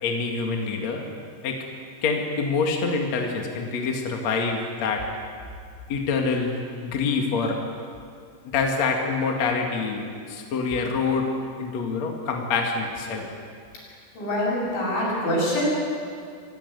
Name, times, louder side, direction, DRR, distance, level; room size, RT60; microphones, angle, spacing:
voice 1, 0.0-1.0 1.4-1.6 2.0-5.0 5.9-7.6 8.4-13.3, left 4 dB, 45° left, 2 dB, 2.7 m, -26 dB
voice 2, 14.2-15.7, equal, 75° left, -4 dB, 9.6 m, -25 dB
26.0 x 16.5 x 9.6 m, 2.3 s
omnidirectional pair, 5.2 m